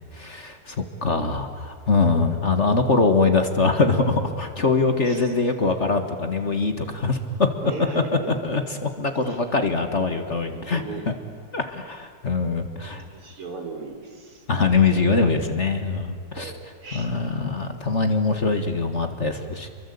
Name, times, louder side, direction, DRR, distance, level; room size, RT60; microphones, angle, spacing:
voice 1, 0.1-7.2 8.3-11.1 11.5-13.0 14.5-16.5 16.9-19.7, left 3 dB, 35° left, 7 dB, 1.8 m, -23 dB
voice 2, 5.0-5.3 7.6-8.3 9.2-9.4 10.1-11.1 12.9-14.5 16.3-17.1, right 4 dB, 85° right, 4 dB, 4.4 m, -37 dB
29.0 x 23.5 x 8.5 m, 2.1 s
omnidirectional pair, 2.4 m